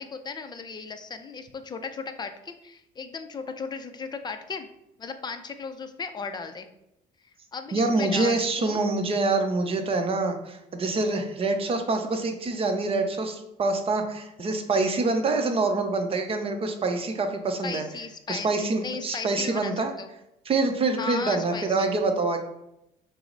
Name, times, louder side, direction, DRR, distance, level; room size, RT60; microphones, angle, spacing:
voice 1, 0.0-4.7 5.0-6.7 7.2-8.9 17.6-18.5 18.8-20.1 21.0-21.9, left 5 dB, 25° left, 8 dB, 0.5 m, -36 dB
voice 2, 7.7-17.8 18.3-19.9 20.5-22.4, right 3 dB, 35° right, 5 dB, 0.6 m, -26 dB
5.7 x 2.0 x 3.9 m, 0.85 s
cardioid pair, 110°, 17 cm